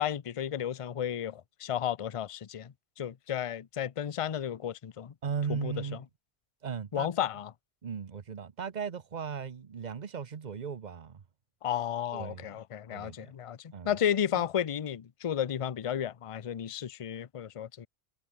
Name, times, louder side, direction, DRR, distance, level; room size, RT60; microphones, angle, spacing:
voice 1, 0.0-5.1 5.5-5.7 6.9-7.5 11.6-17.9, left 9 dB, 40° left, 0.5 m, -33 dB
voice 2, 5.2-6.0 6.6-7.1 7.8-11.2 12.1-12.5 12.9-13.3 13.7-13.9 14.3-14.4, right 6 dB, 40° right, 0.9 m, -37 dB
omnidirectional pair, 1.2 m